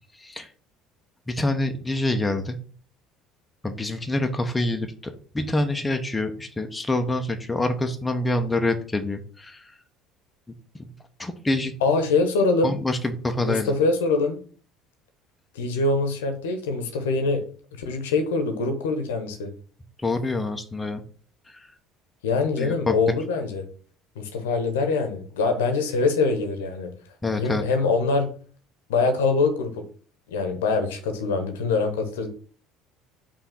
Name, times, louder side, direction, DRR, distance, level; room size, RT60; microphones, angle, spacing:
voice 1, 0.2-0.5 1.3-2.6 3.6-9.6 11.2-11.7 12.6-13.7 20.0-21.0 21.5-21.7 22.6-22.9 27.2-27.6, left 2 dB, 15° left, 5 dB, 0.9 m, -26 dB
voice 2, 11.8-12.8 13.4-14.4 15.5-17.4 17.8-19.5 22.2-23.6 24.1-26.9 27.4-28.3 28.9-29.8 30.3-32.3, left 3 dB, 70° left, 6 dB, 1.1 m, -24 dB
5.6 x 3.6 x 5.9 m, 0.42 s
figure-of-eight pair, 60°, 0 cm